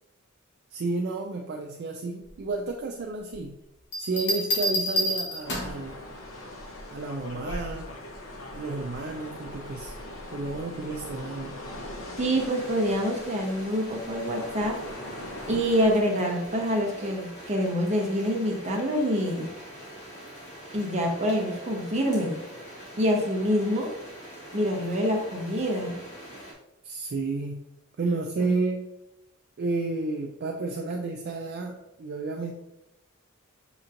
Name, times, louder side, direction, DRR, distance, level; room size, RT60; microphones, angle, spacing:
voice 1, 0.7-3.6 4.0-6.0 6.9-7.9 8.5-10.0 10.3-11.5 26.8-27.6 28.0-28.9 29.6-32.5, right 3 dB, 50° right, 2 dB, 0.4 m, -31 dB
sound 1, 3.9-5.9 7.5-7.8, equal, 55° left, 1.0 m, -28 dB
sound 2, 5.4-16.0, left 1 dB, 80° left, 0.7 m, -41 dB
voice 2, 12.2-14.8 15.5-19.5 20.7-22.4 23.0-23.9 24.5-26.0 28.4-28.5, equal, 35° right, 0 dB, 0.8 m, -26 dB
sound 3, 12.4-26.5, right 1 dB, 35° left, 1.3 m, -44 dB
6.5 x 3.0 x 2.5 m, 0.87 s
head